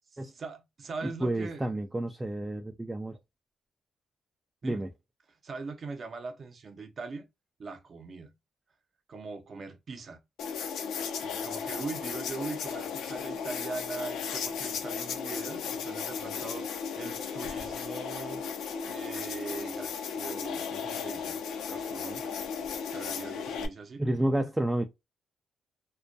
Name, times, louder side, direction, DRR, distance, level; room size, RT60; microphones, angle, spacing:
voice 1, 0.2-1.7 4.6-4.8 5.3-7.3 7.6-8.3 9.1-10.2 11.2-16.7 17.0-18.5 18.9-21.4 21.7-22.4 22.9-24.0, right 4 dB, 45° right, 0.6 m, -41 dB
voice 2, 1.0-3.2 4.6-4.9 24.0-24.9, right 1 dB, 10° right, 0.3 m, -30 dB
sound 1, 10.4-23.7, left 6 dB, 80° left, 0.5 m, -35 dB
2.3 x 2.2 x 2.5 m
cardioid pair, 90°, 0 cm